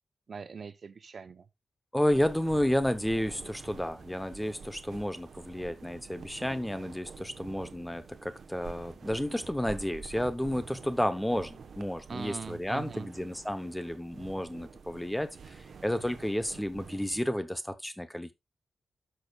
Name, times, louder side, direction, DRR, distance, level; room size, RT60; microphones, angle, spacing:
voice 1, 0.3-1.5 12.1-13.1, right 5 dB, 50° right, 0.7 m, -41 dB
voice 2, 1.9-18.3, left 1 dB, 5° left, 0.7 m, -31 dB
sound 1, 2.1-17.2, right 5 dB, 65° right, 1.0 m, -48 dB
12.0 x 6.3 x 2.3 m
wide cardioid pair, 160°, 0 cm